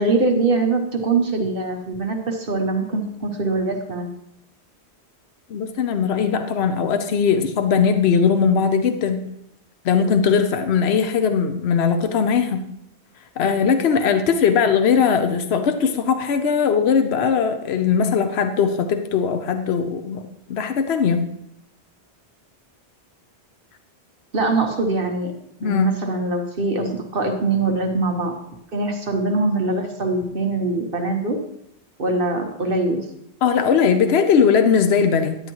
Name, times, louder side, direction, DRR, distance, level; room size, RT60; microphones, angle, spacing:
voice 1, 0.0-4.1 24.3-25.3 25.6-28.4 28.7-31.4 32.0-33.0, right 3 dB, 55° right, 3 dB, 1.2 m, -23 dB
voice 2, 5.5-9.2 9.8-12.6 13.4-20.2 20.5-21.3 25.6-25.9 33.4-35.4, left 6 dB, 75° left, 7 dB, 1.0 m, -19 dB
10.0 x 9.9 x 3.0 m, 0.77 s
omnidirectional pair, 1.1 m